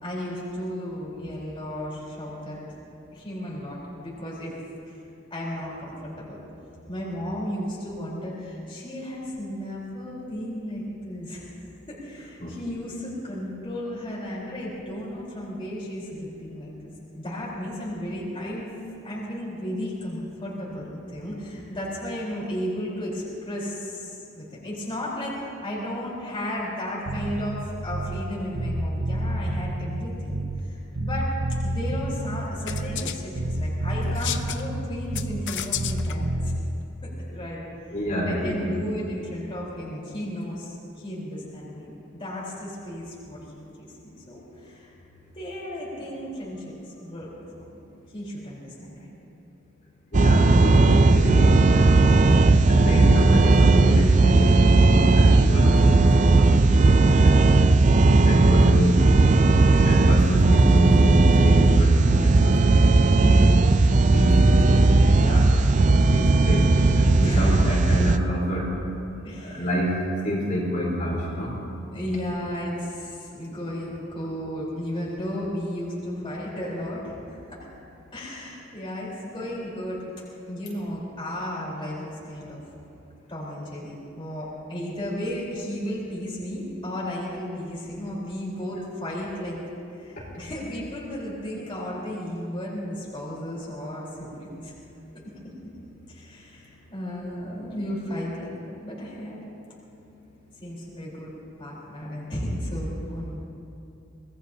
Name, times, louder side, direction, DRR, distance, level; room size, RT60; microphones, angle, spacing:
voice 1, 0.0-2.6 3.1-4.5 4.9-5.0 5.3-6.4 6.9-11.6 11.9-18.7 19.0-25.4 25.6-31.3 31.6-36.5 37.0-37.6 38.2-43.9 44.3-44.9 45.3-47.8 48.1-49.1 52.2-53.0 56.9-57.7 63.2-63.9 67.2-67.6 69.2-69.7 71.9-77.6 78.1-80.0 80.5-82.6 83.3-89.6 90.0-94.7 96.1-98.5 98.8-99.4 100.6-101.3 101.6-103.4, equal, 25° left, -6 dB, 4.1 m, -34 dB
Bass guitar, 27.1-28.3 28.6-30.7 31.0-33.1 33.4-35.5 35.8-36.6, right 1 dB, 80° right, 1.0 m, -29 dB
sound 1, 32.7-33.2 34.0-34.6 35.1-36.1, left 11 dB, 60° left, 0.7 m, -32 dB
voice 2, 37.9-38.9 50.1-52.0 52.7-56.5 57.2-57.4 58.2-59.0 59.8-62.8 64.1-64.9 65.2-65.5 66.1-66.7 66.9-68.7 69.4-69.9 70.2-71.6, equal, 40° left, -6 dB, 4.0 m, -27 dB
sound 2, 50.1-68.2, right 3 dB, 35° right, 0.5 m, -17 dB
25.5 x 20.0 x 2.9 m, 2.7 s
head